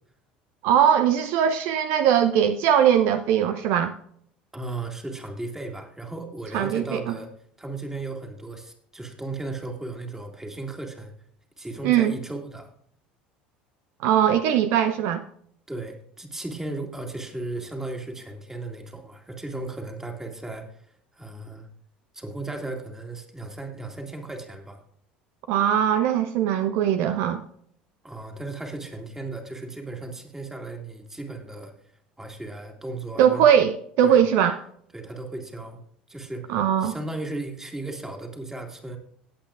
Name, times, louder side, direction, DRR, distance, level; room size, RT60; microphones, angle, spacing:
voice 1, 0.6-3.9 6.5-7.1 11.8-12.1 14.0-15.2 25.5-27.4 33.2-34.6 36.5-36.9, right 9 dB, 55° right, 0.6 m, -20 dB
voice 2, 4.5-11.1 11.6-12.7 15.7-21.7 22.1-24.8 28.0-31.7 32.2-33.5 34.0-34.2 34.9-35.8 36.1-39.0, right 2 dB, 10° right, 2.2 m, -36 dB
18.0 x 8.4 x 2.5 m
figure-of-eight pair, 65°, 5 cm